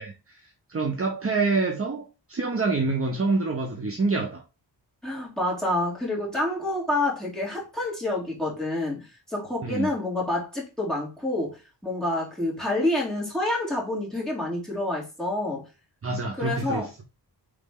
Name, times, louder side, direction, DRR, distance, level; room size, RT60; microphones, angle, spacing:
voice 1, 0.0-4.4 9.6-9.9 16.0-17.0, right 3 dB, 30° right, 0.7 m, -27 dB
voice 2, 5.0-15.7 16.4-16.9, left 1 dB, ahead, 2.2 m, -28 dB
4.1 x 3.2 x 3.5 m
wide cardioid pair, 120°, 43 cm